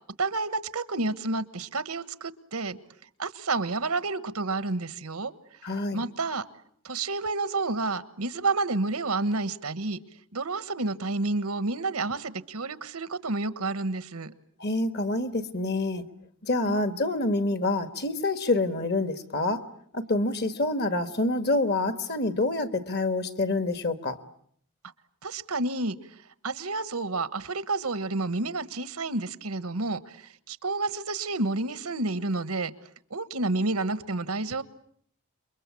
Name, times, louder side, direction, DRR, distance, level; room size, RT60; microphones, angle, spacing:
voice 1, 0.2-2.8 3.2-5.3 5.6-6.4 6.8-10.0 10.3-14.3 16.7-16.8 25.2-26.0 26.4-32.7 33.1-34.6, right 3 dB, 90° right, 14 dB, 1.4 m, -30 dB
voice 2, 5.6-6.0 14.6-16.0 16.5-19.6 19.9-24.2, left 2 dB, 50° left, 11 dB, 1.6 m, -27 dB
28.5 x 23.5 x 8.5 m, 0.65 s
head